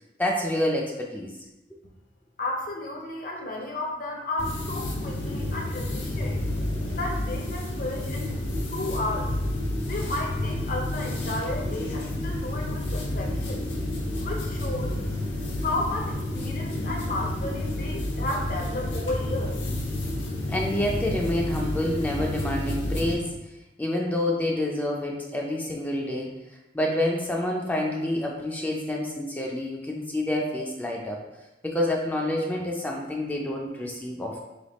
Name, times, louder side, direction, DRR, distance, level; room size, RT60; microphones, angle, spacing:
voice 1, 0.2-1.3 20.5-23.3 23.8-26.4 26.7-31.2 31.6-34.4, left 1 dB, 10° left, -1 dB, 0.4 m, -28 dB
voice 2, 2.4-6.4 6.9-8.3 8.7-9.3 9.9-13.6 14.2-14.9 15.6-19.5, left 2 dB, 50° left, 0 dB, 0.7 m, -33 dB
sound 1, 4.4-23.1, left 1 dB, 85° left, 1.4 m, -30 dB
3.4 x 3.1 x 4.0 m, 0.99 s
head